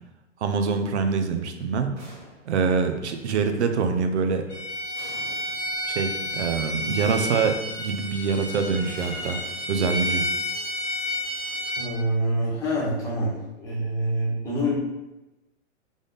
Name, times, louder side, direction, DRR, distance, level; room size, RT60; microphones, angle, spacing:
voice 1, 0.4-1.9 2.5-4.4 5.8-9.4 9.7-10.3, right 5 dB, 60° right, 6 dB, 0.7 m, -25 dB
sound 1, 2.0-2.7 5.0-5.7 7.0-7.7 9.0-10.2, right 1 dB, 35° right, 1.2 m, -48 dB
Bowed string instrument, 4.5-11.9, left 1 dB, 25° left, 1.3 m, -30 dB
voice 2, 11.7-14.7, equal, 10° left, -8 dB, 1.3 m, -26 dB
3.7 x 3.5 x 3.9 m, 1.0 s
hypercardioid pair, 155°, 38 cm